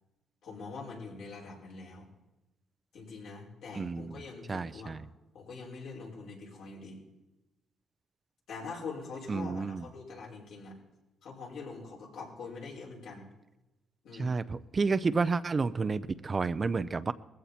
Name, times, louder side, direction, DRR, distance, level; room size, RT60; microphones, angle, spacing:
voice 1, 0.4-2.1 2.9-4.9 5.3-7.0 8.5-10.8 11.2-13.3 14.0-14.4, left 4 dB, 75° left, -3 dB, 5.7 m, -44 dB
voice 2, 3.7-4.2 4.5-5.1 9.3-9.8 14.2-17.1, right 4 dB, 35° right, 14 dB, 0.6 m, -30 dB
20.0 x 15.0 x 4.4 m, 1.0 s
cardioid pair, 90°, 0 cm